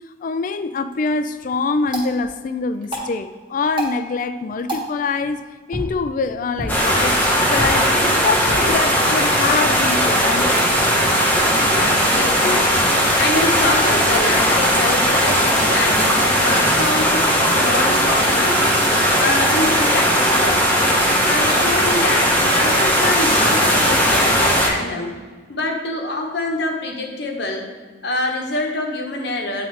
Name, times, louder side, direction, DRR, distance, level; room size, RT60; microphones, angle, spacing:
voice 1, 0.2-7.9 8.2-10.7, left 4 dB, 45° left, 0.3 m, -24 dB
sound 1, 0.7-10.8, right 1 dB, 25° right, 1.2 m, -34 dB
sound 2, 6.7-24.7, equal, 10° left, 0.8 m, -17 dB
voice 2, 11.5-18.8 19.2-20.7 21.2-25.1 25.5-27.6 28.0-29.7, left 2 dB, 60° left, 0.9 m, -25 dB
8.4 x 3.7 x 3.2 m
head